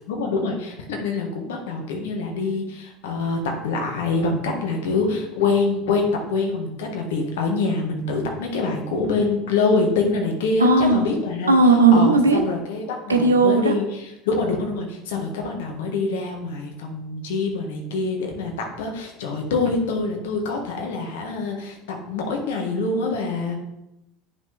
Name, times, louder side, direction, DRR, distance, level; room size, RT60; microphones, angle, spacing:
voice 1, 0.1-11.5 11.9-23.5, left 3 dB, 70° left, 2 dB, 1.6 m, -25 dB
voice 2, 10.6-11.1 11.5-12.4 13.1-13.7, right 3 dB, 85° right, 5 dB, 0.9 m, -16 dB
9.4 x 5.8 x 3.5 m, 0.90 s
figure-of-eight pair, 70°, 0 cm